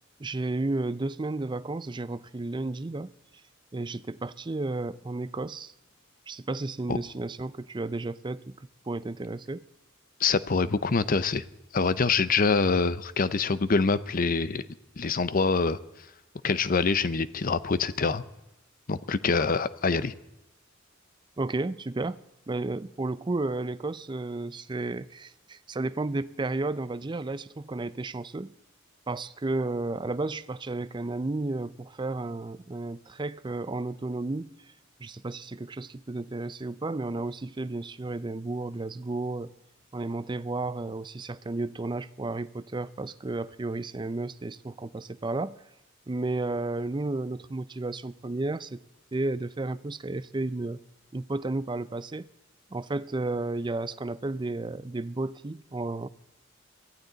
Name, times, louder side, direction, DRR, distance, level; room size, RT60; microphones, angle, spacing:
voice 1, 0.2-3.1 3.7-5.7 6.3-8.5 8.9-9.6 21.4-22.2 22.5-28.5 29.1-34.6 35.0-39.5 39.9-45.6 46.1-48.8 49.1-50.8 51.1-52.3 52.7-56.1, right 2 dB, 20° right, 0.5 m, -32 dB
voice 2, 10.2-11.4 11.7-14.7 15.0-15.8 16.4-18.2 18.9-20.1, left 4 dB, 45° left, 0.6 m, -25 dB
23.0 x 15.0 x 4.0 m
head